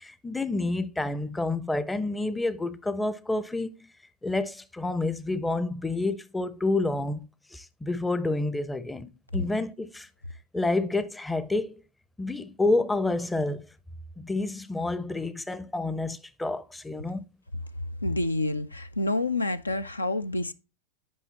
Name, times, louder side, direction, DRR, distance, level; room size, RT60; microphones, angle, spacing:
voice 1, 0.0-3.7 4.2-10.1 10.5-11.8 12.2-13.7 14.2-17.2, left 2 dB, 5° left, 0.5 m, -29 dB
voice 2, 18.0-20.5, left 2 dB, 80° left, 0.4 m, -28 dB
8.3 x 5.5 x 2.8 m
figure-of-eight pair, 90°, 0 cm